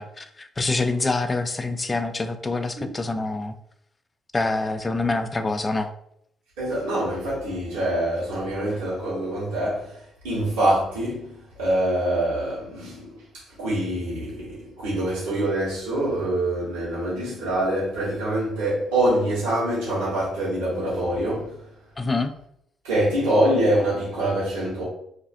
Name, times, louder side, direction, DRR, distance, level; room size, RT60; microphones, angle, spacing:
voice 1, 0.0-3.5 4.3-5.9 22.0-22.3, left 3 dB, 30° left, 0.3 m, -26 dB
voice 2, 6.6-21.6 22.8-24.8, right 1 dB, 90° right, 1.1 m, -25 dB
2.5 x 2.4 x 2.4 m
hypercardioid pair, 55°, 0 cm